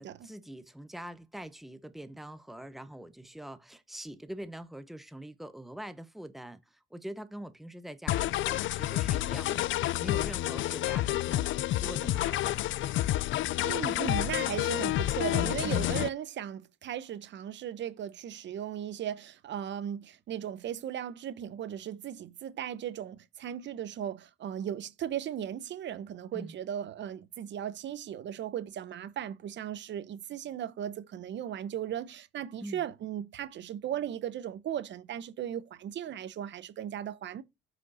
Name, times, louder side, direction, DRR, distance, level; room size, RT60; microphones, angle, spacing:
voice 1, 0.0-9.7 10.0-12.6 14.4-14.6 15.6-15.8 26.3-26.5 32.6-32.8, right 1 dB, ahead, 0.9 m, -44 dB
sound 1, 8.1-16.1, left 15 dB, 75° left, 0.4 m, -29 dB
voice 2, 13.6-37.4, right 10 dB, 65° right, 0.9 m, -37 dB
7.9 x 5.0 x 4.2 m
cardioid pair, 90°, 20 cm